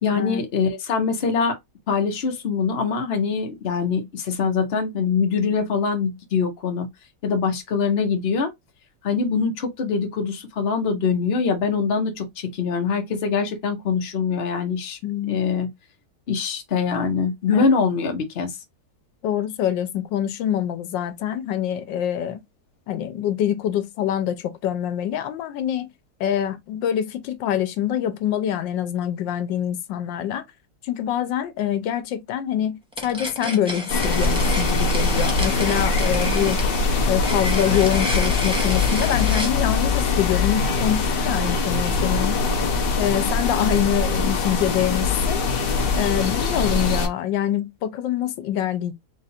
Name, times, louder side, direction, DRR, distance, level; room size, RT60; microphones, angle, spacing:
voice 1, 0.0-1.6 1.9-6.9 7.2-8.5 9.0-15.0 15.3-15.7 16.3-18.5, left 5 dB, 40° left, 1.0 m, -23 dB
voice 2, 15.0-15.4 17.5-17.6 19.2-22.4 22.9-25.9 26.2-30.4 30.8-36.6 37.0-42.5 43.0-45.4 45.9-48.9, left 10 dB, 85° left, 1.3 m, -25 dB
sound 1, 32.9-39.6, equal, 5° right, 0.8 m, -31 dB
sound 2, 33.9-47.1, left 4 dB, 60° left, 0.6 m, -22 dB
3.8 x 2.5 x 4.2 m
omnidirectional pair, 2.0 m